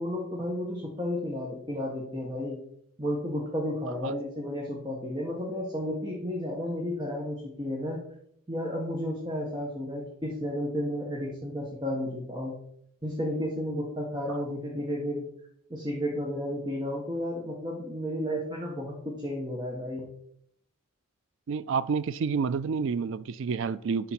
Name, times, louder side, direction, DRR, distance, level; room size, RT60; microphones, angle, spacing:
voice 1, 0.0-2.6 3.0-8.0 8.5-12.5 13.0-15.2 15.7-20.1, equal, 20° right, 1.2 m, -32 dB
voice 2, 21.5-24.1, right 5 dB, 55° right, 0.3 m, -29 dB
11.0 x 3.9 x 4.3 m
head